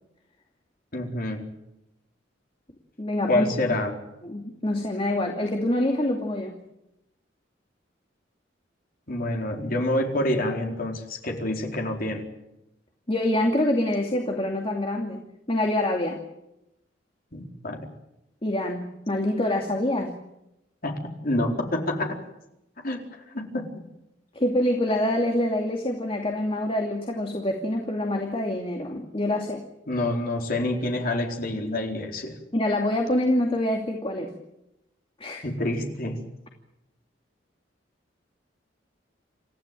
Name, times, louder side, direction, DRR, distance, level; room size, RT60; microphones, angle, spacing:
voice 1, 0.9-1.5 3.3-3.9 9.1-12.3 17.3-17.9 20.8-22.2 22.8-23.7 29.9-32.4 35.4-36.2, left 1 dB, 50° left, 2 dB, 4.3 m, -27 dB
voice 2, 3.0-3.5 4.2-6.5 13.1-15.2 15.5-16.2 18.4-20.1 24.3-29.6 32.5-34.3 35.2-35.4, left 1 dB, 30° left, 2 dB, 2.6 m, -26 dB
28.5 x 15.0 x 9.2 m, 0.88 s
head